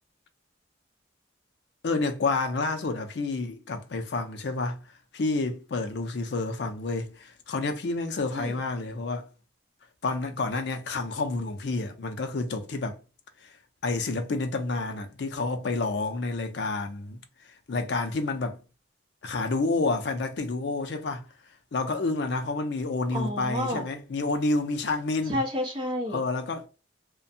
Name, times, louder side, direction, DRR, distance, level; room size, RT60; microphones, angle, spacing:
voice 1, 1.8-4.8 5.1-9.3 10.0-13.0 13.8-17.2 17.7-18.6 19.2-21.2 21.7-25.4 26.1-26.7, left 3 dB, 65° left, 0.5 m, -29 dB
voice 2, 23.1-23.9 25.3-26.2, left 1 dB, 25° right, 0.8 m, -30 dB
2.6 x 2.2 x 2.6 m
head